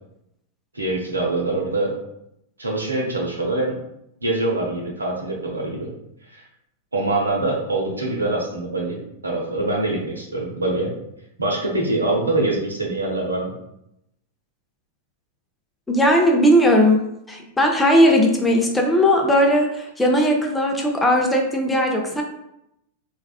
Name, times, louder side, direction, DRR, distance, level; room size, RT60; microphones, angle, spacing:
voice 1, 0.7-2.0 2.6-3.7 4.2-5.9 6.3-6.4 6.9-9.0 9.2-10.9 11.4-13.5, right 2 dB, 85° right, -1 dB, 0.7 m, -24 dB
voice 2, 15.9-17.0 17.3-22.2, equal, 10° left, 1 dB, 0.5 m, -18 dB
3.4 x 2.4 x 2.3 m, 0.81 s
figure-of-eight pair, 95°, 0 cm